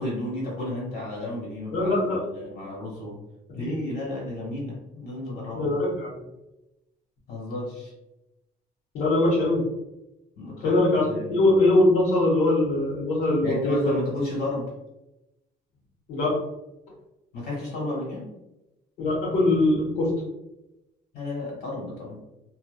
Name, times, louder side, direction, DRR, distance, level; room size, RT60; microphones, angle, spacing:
voice 1, 0.0-1.9 2.3-3.2 3.5-5.7 7.3-7.9 10.4-10.8 11.1-11.3 13.4-14.7 17.3-18.3 21.1-22.2, left 2 dB, 60° left, -4 dB, 1.4 m, -32 dB
voice 2, 1.7-2.2 3.6-3.7 5.5-6.2 8.9-9.6 10.6-13.9 16.1-16.3 19.0-20.1, left 2 dB, 90° left, -6 dB, 0.9 m, -22 dB
2.7 x 2.1 x 2.2 m, 0.95 s
cardioid pair, 110°, 17 cm